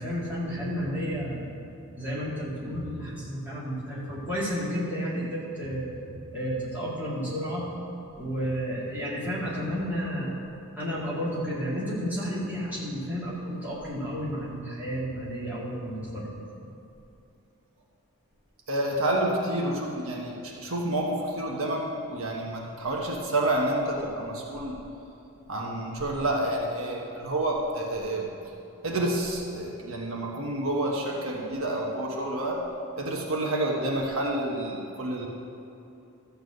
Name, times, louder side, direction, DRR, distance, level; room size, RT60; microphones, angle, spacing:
voice 1, 0.0-1.5 2.0-7.7 8.1-10.3 10.8-16.3, equal, 10° right, -9 dB, 2.6 m, -32 dB
voice 2, 18.7-24.8 25.5-28.3 28.8-32.6 33.0-35.3, right 1 dB, 70° right, -2 dB, 1.3 m, -29 dB
13.0 x 4.6 x 7.8 m, 2.8 s
head